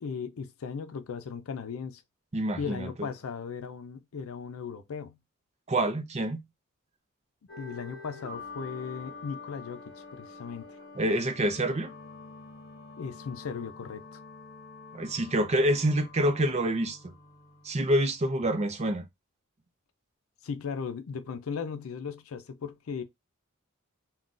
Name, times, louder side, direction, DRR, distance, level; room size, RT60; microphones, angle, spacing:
voice 1, 0.0-2.0 2.6-5.2 7.6-9.8 10.1-10.6 13.0-14.2 20.4-23.0, left 6 dB, 85° left, 0.5 m, -37 dB
voice 2, 2.3-2.9 5.7-6.4 11.0-11.9 14.9-17.1 17.6-19.0, right 1 dB, 30° right, 0.5 m, -27 dB
sound 1, 7.5-18.5, left 3 dB, 50° left, 0.9 m, -47 dB
3.7 x 2.3 x 2.4 m
head